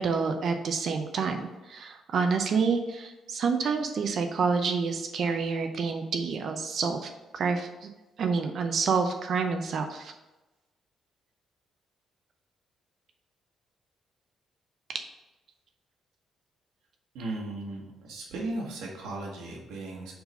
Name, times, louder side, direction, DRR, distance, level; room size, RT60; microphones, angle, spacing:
voice 1, 0.0-7.9 8.2-10.1 14.9-15.0, right 5 dB, 60° right, 5 dB, 0.6 m, -28 dB
voice 2, 17.1-20.1, right 2 dB, 90° right, -1 dB, 1.5 m, -36 dB
4.8 x 3.9 x 5.3 m, 1.1 s
cardioid pair, 90°, 0 cm